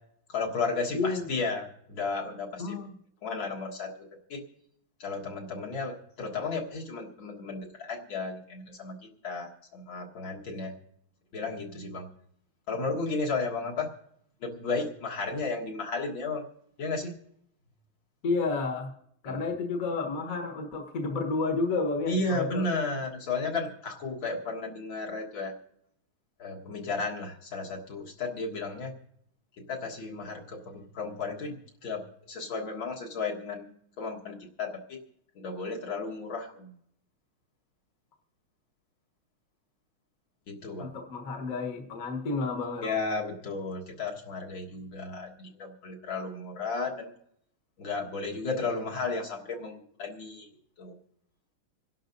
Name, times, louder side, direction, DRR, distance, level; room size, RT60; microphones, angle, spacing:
voice 1, 0.3-2.8 3.2-4.4 5.0-9.0 9.2-10.7 11.3-12.1 12.7-13.9 14.4-16.4 16.8-17.1 19.2-19.4 22.1-25.5 26.4-28.9 29.7-35.0 35.4-36.7 40.5-41.0 42.8-47.1 47.8-50.5 50.8-51.0, left 3 dB, 70° left, -1 dB, 2.4 m, -34 dB
voice 2, 0.9-1.3 2.6-2.9 18.2-18.9 19.2-22.7 40.8-42.9, left 3 dB, 45° left, 3 dB, 1.5 m, -31 dB
27.5 x 11.5 x 2.6 m, 0.72 s
omnidirectional pair, 2.3 m